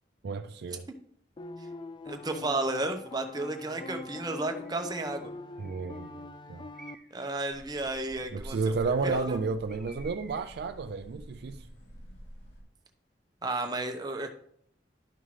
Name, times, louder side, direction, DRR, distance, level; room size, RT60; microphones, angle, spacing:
voice 1, 0.2-0.9 5.6-6.7 8.3-11.7, right 4 dB, 60° right, 0.3 m, -32 dB
sound 1, 1.4-7.0, left 2 dB, 25° left, 0.3 m, -43 dB
voice 2, 2.1-5.3 7.1-9.4 13.4-14.3, right 2 dB, 25° right, 0.8 m, -33 dB
Bird, 4.7-4.8 5.6-6.1 6.7-7.4 9.7-10.7, right 3 dB, ahead, 1.4 m, -53 dB
sound 2, 7.5-12.6, equal, 75° left, 2.8 m, -48 dB
11.5 x 5.5 x 3.2 m
head